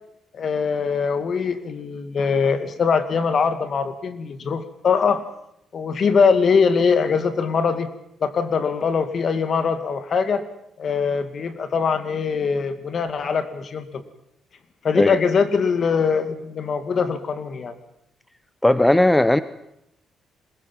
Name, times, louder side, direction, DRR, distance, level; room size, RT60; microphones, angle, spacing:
voice 1, 0.3-5.2 5.7-7.9 8.2-10.4 10.8-14.0 14.8-17.7, left 5 dB, 50° left, 10 dB, 2.4 m, -22 dB
voice 2, 18.6-19.4, left 1 dB, 10° left, 14 dB, 0.9 m, -16 dB
22.0 x 20.0 x 7.5 m, 0.79 s
cardioid pair, 90°, 0 cm